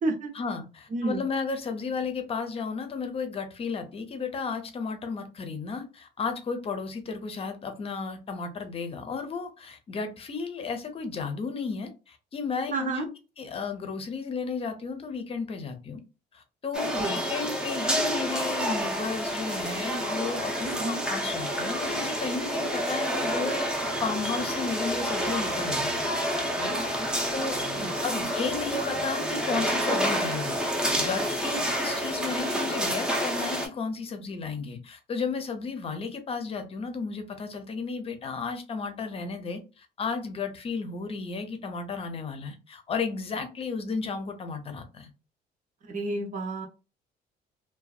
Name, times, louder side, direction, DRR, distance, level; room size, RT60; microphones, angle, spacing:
voice 1, 0.3-13.1 13.4-16.0 16.3-23.6 24.0-26.0 26.6-27.6 28.0-30.6 30.9-45.1, left 5 dB, 35° left, 0.6 m, -33 dB
voice 2, 0.9-1.3 12.7-13.1 17.0-17.2 20.6-21.0 26.8-26.9 27.7-27.9 45.9-46.7, right 2 dB, 50° right, 0.8 m, -30 dB
sound 1, 16.7-33.7, equal, 5° right, 0.6 m, -29 dB
2.5 x 2.2 x 2.3 m
cardioid pair, 110°, 17 cm